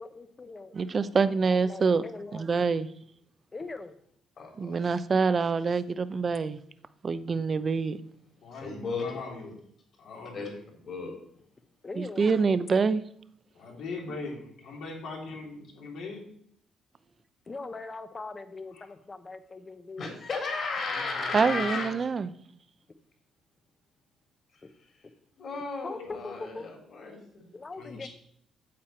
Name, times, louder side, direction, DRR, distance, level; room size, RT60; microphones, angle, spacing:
voice 1, 0.0-0.7 1.5-2.5 3.5-3.9 11.8-12.3 17.5-20.1 25.8-26.7 27.5-28.1, left 3 dB, 30° left, 0.9 m, -41 dB
voice 2, 0.7-2.0 2.3-2.9 4.6-6.6 7.0-8.0 12.0-13.0 21.3-22.3, right 5 dB, 40° right, 0.6 m, -26 dB
voice 3, 4.4-4.8 8.6-9.1 10.3-10.5 10.8-11.1 20.0-21.9 25.4-27.5, left 4 dB, 55° left, 3.7 m, -34 dB
voice 4, 8.4-9.6 10.0-10.5 13.5-16.3 18.7-18.9 20.9-21.9 26.0-26.4 27.8-28.1, left 3 dB, 80° left, 3.2 m, -41 dB
8.7 x 7.4 x 4.4 m
cardioid pair, 90°, 0 cm